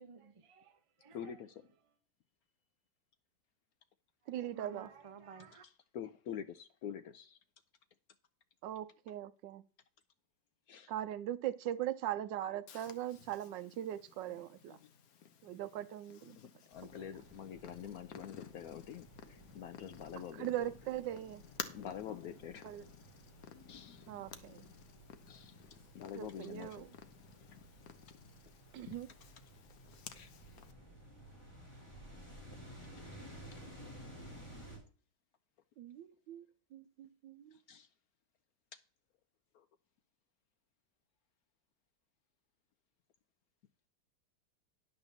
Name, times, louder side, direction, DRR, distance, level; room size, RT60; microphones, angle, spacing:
voice 1, 0.0-1.5 1.8-1.9 4.2-5.6, right 5 dB, 45° right, 0.4 m, -55 dB
voice 2, 1.1-1.5 5.9-7.4 10.7-10.9 14.7-14.8 16.3-20.5 21.7-22.7 23.5-24.1 24.3-24.4 25.3-25.5 25.9-26.9 30.1-30.3 33.5-33.6 37.7-37.9, left 9 dB, 75° left, 0.8 m, -46 dB
voice 3, 4.3-4.9 8.6-9.6 10.9-14.8 15.4-16.4 16.8-16.9 20.4-21.4 22.6-22.8 24.1-24.6 26.1-26.9 28.7-29.1 35.8-36.5 36.7-37.5, right 12 dB, 75° right, 1.2 m, -40 dB
Purr, 12.7-30.7, left 7 dB, 60° left, 1.2 m, -54 dB
sound 1, 16.7-34.8, right 1 dB, 15° left, 4.1 m, -55 dB
10.5 x 4.0 x 7.0 m
omnidirectional pair, 2.0 m